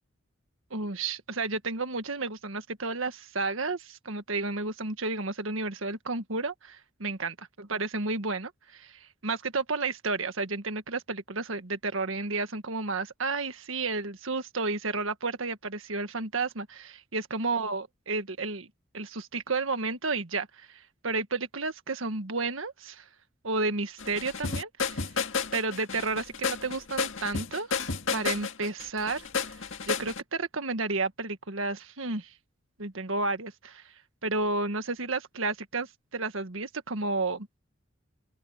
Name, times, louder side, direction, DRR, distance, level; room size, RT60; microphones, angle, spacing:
voice 1, 0.7-18.7 18.9-23.0 23.4-25.1 25.5-29.6 29.8-32.3 32.8-33.8 34.2-35.9 36.1-37.6, right 3 dB, 85° right, 1.6 m, -32 dB
sound 1, 24.0-30.2, left 5 dB, 75° left, 1.9 m, -32 dB
open air
head